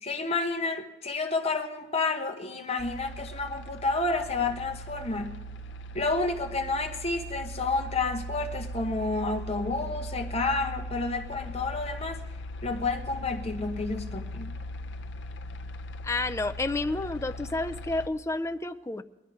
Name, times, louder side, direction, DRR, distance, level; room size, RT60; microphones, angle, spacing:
voice 1, 0.0-5.4 5.9-12.2 12.6-14.6, left 3 dB, 35° left, 5 dB, 1.0 m, -30 dB
sound 1, 2.8-18.1, equal, 70° left, 0.6 m, -39 dB
voice 2, 16.0-19.0, left 2 dB, 15° left, 11 dB, 0.4 m, -30 dB
20.0 x 11.0 x 4.7 m, 1.1 s
head